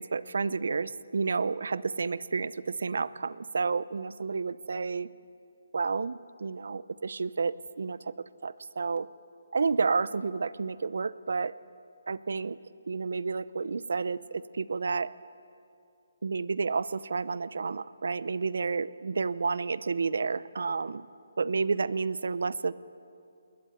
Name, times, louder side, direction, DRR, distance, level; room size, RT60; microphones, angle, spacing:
voice 1, 0.0-5.1 5.7-9.1 9.5-11.5 12.1-12.6 12.9-15.1 16.2-21.1 21.4-22.7, right 4 dB, 70° right, 18 dB, 0.7 m, -30 dB
20.0 x 20.0 x 9.6 m, 2.6 s
hypercardioid pair, 165°, 0 cm